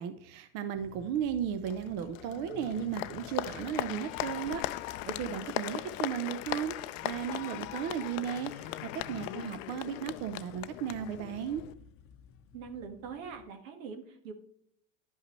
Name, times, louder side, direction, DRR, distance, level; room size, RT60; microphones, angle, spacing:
voice 1, 0.0-4.6 5.0-6.7 7.0-8.5 8.9-11.6, right 9 dB, 55° right, 10 dB, 0.7 m, -35 dB
sound 1, 0.7-13.5, left 7 dB, 35° left, 0.7 m, -55 dB
Applause, 1.6-11.7, left 16 dB, 75° left, 0.5 m, -39 dB
Trumpet, 3.9-9.6, left 2 dB, ahead, 1.6 m, -58 dB
voice 2, 12.5-14.3, right 6 dB, 85° right, 6 dB, 1.5 m, -43 dB
10.5 x 5.5 x 3.1 m, 0.71 s
supercardioid pair, 125°, 39 cm